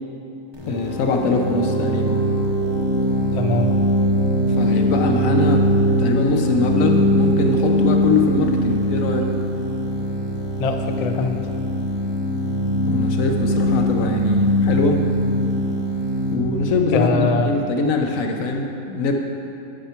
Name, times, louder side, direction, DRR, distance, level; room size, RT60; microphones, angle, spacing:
voice 1, 0.6-2.2 4.5-5.6 6.0-9.3 12.8-15.0 16.3-19.1, left 3 dB, 90° left, 3 dB, 1.2 m, -22 dB
sound 1, 0.6-18.1, equal, 20° right, 0.9 m, -21 dB
voice 2, 3.3-3.8 10.6-11.4 16.9-17.6, left 4 dB, 55° left, 5 dB, 0.4 m, -22 dB
9.4 x 4.4 x 5.7 m, 2.9 s
omnidirectional pair, 1.4 m